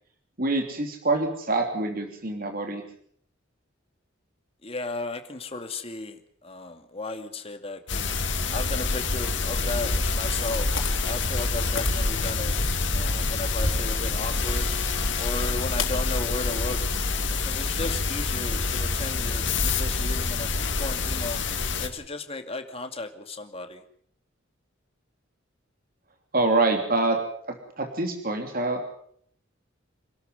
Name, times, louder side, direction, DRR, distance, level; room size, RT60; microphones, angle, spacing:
voice 1, 0.4-2.8 26.3-27.2 27.5-28.9, right 2 dB, 45° right, 4 dB, 3.2 m, -26 dB
voice 2, 4.6-8.1 8.5-12.6 12.9-14.7 15.2-16.8 17.3-21.4 21.8-23.8, left 2 dB, 30° left, 6 dB, 2.5 m, -35 dB
sound 1, 7.9-21.9, left 3 dB, 65° left, 2.8 m, -27 dB
sound 2, 8.1-17.5, left 1 dB, 80° left, 3.9 m, -33 dB
27.5 x 12.5 x 9.5 m, 0.65 s
head